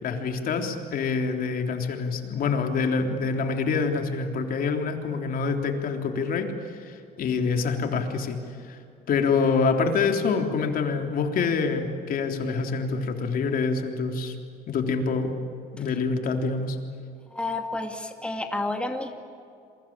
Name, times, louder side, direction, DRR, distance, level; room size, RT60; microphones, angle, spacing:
voice 1, 0.0-6.5 6.7-8.4 8.6-8.8 9.1-14.3 14.7-15.3 15.7-16.8, left 4 dB, 60° left, 4 dB, 3.6 m, -26 dB
voice 2, 17.3-19.1, left 2 dB, 5° left, 4 dB, 2.4 m, -30 dB
28.5 x 23.5 x 8.8 m, 2.5 s
cardioid pair, 110°, 17 cm